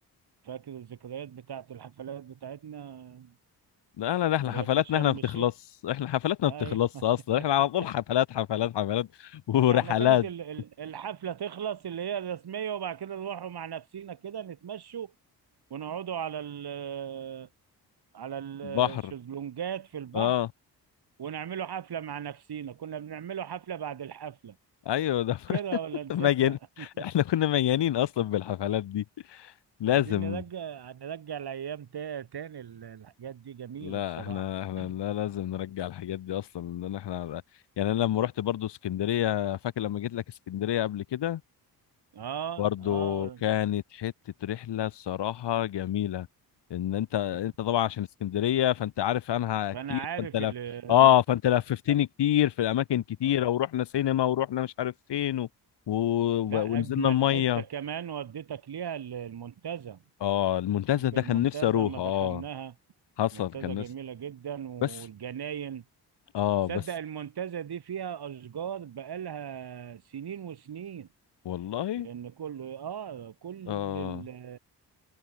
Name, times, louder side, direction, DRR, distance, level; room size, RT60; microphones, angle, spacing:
voice 1, 0.4-3.3 4.4-5.5 6.5-7.0 9.6-15.1 15.7-17.5 18.1-20.4 21.2-24.6 25.5-27.1 29.9-34.5 34.8-35.0 42.1-43.4 47.3-47.4 49.7-51.1 51.9-52.0 53.2-53.4 56.4-60.0 61.1-62.7 63.3-65.8 66.7-71.1 72.0-74.6, right 8 dB, 70° right, 6.9 m, -38 dB
voice 2, 4.0-5.5 5.8-10.3 18.6-19.1 20.1-20.5 24.8-25.6 26.1-29.5 29.8-30.4 33.8-37.4 37.8-41.4 42.6-44.1 44.4-46.3 46.7-50.5 50.9-55.5 55.9-57.6 60.2-62.4 63.2-63.8 64.8-64.9 66.3-66.8 71.4-72.1 73.7-74.2, left 11 dB, 80° left, 4.8 m, -27 dB
cardioid pair, 65°, 41 cm